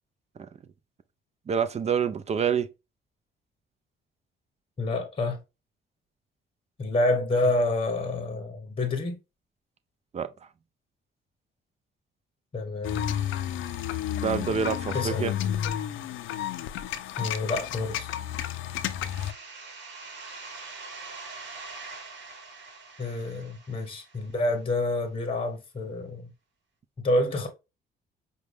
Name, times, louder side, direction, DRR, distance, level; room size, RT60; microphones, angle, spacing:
voice 1, 1.5-2.7 10.1-10.3 14.2-15.3, right 7 dB, 35° right, 0.4 m, -27 dB
voice 2, 4.8-5.4 6.8-9.2 12.5-13.1 14.9-15.5 17.2-18.1 23.0-26.3 27.0-27.5, left 2 dB, 25° left, 0.9 m, -28 dB
sound 1, 12.8-19.3, left 11 dB, 80° left, 0.5 m, -31 dB
sound 2, 19.1-24.6, right 4 dB, 65° right, 1.1 m, -43 dB
5.1 x 2.2 x 3.2 m
cardioid pair, 90°, 20 cm